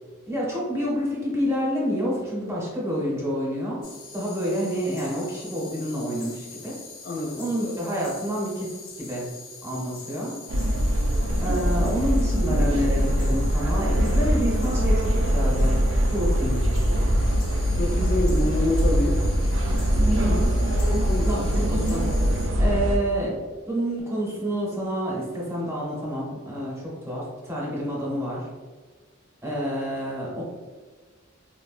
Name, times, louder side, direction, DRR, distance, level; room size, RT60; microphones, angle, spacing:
voice 1, 0.3-3.8 4.1-6.8 7.4-9.3 9.6-10.4 11.4-15.8 16.0-16.6 20.1-20.6 21.2-22.0 22.6-23.4 23.7-28.5 29.4-30.4, equal, 15° right, -5 dB, 0.7 m, -28 dB
sound 1, 3.8-22.5, left 4 dB, 85° left, 0.7 m, -44 dB
voice 2, 7.0-7.4 17.8-19.2 20.8-21.3, left 2 dB, 45° left, -1 dB, 0.5 m, -27 dB
sound 2, 10.5-23.0, equal, 75° right, 0.4 m, -22 dB
4.0 x 2.1 x 2.4 m, 1.4 s
head